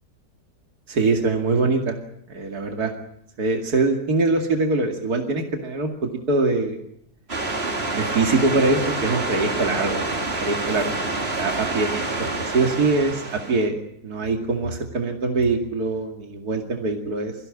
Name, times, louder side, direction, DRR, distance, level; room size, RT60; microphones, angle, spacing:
voice 1, 0.9-2.0 2.3-2.9 3.4-6.8 7.9-10.9 11.4-11.9 12.2-13.8 14.0-17.3, right 3 dB, 70° right, 3 dB, 2.9 m, -23 dB
sound 1, 7.3-13.7, right 2 dB, 40° right, 2.8 m, -27 dB
24.5 x 16.0 x 9.8 m, 0.74 s
omnidirectional pair, 1.7 m